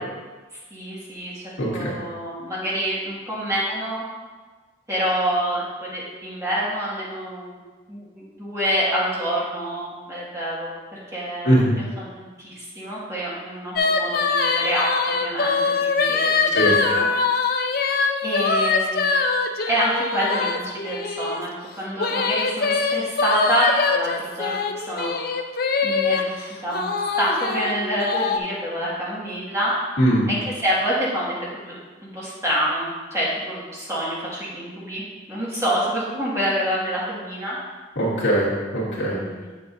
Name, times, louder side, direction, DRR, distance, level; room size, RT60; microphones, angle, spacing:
voice 1, 0.7-4.0 4.9-5.6 5.9-7.5 7.9-11.7 12.0-14.9 15.2-17.1 18.2-19.0 19.7-21.5 21.8-24.5 24.8-25.1 25.8-26.9 27.2-29.7 30.3-31.3 31.6-31.8 32.0-35.0 35.3-37.6 38.8-39.5, equal, 15° right, -8 dB, 1.9 m, -27 dB
voice 2, 1.6-1.9 11.4-11.8 16.5-16.7 30.0-30.3 38.0-39.2, equal, 70° left, -7 dB, 2.3 m, -20 dB
sound 1, 13.8-21.4 22.0-26.2 26.7-28.4, left 4 dB, 50° left, 0.5 m, -23 dB
7.8 x 7.5 x 2.7 m, 1.3 s
head